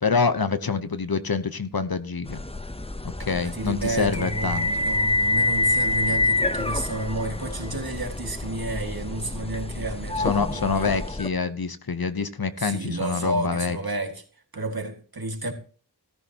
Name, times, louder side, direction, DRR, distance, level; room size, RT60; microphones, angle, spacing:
voice 1, 0.0-2.4 3.2-4.7 10.2-13.8, left 5 dB, 55° left, 1.0 m, -26 dB
sound 1, 2.3-11.3, left 2 dB, 15° left, 0.8 m, -27 dB
voice 2, 3.4-10.9 12.6-14.2 14.5-15.5, right 1 dB, 55° right, 2.2 m, -31 dB
14.0 x 14.0 x 2.9 m
wide cardioid pair, 40°, 43 cm